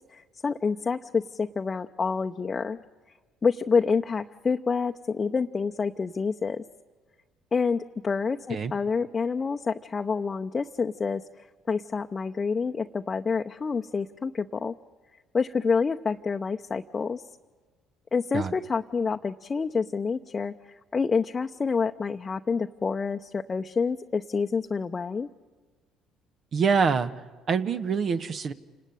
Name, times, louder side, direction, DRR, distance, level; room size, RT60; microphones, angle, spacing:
voice 1, 0.1-2.8 3.4-6.6 7.5-11.2 11.7-14.7 15.3-17.2 18.1-25.3, left 5 dB, 35° left, 4 dB, 0.8 m, -28 dB
voice 2, 26.5-27.1 27.5-28.5, right 5 dB, 50° right, 10 dB, 1.1 m, -25 dB
28.0 x 19.0 x 9.3 m, 1.4 s
hypercardioid pair, 55°, 0 cm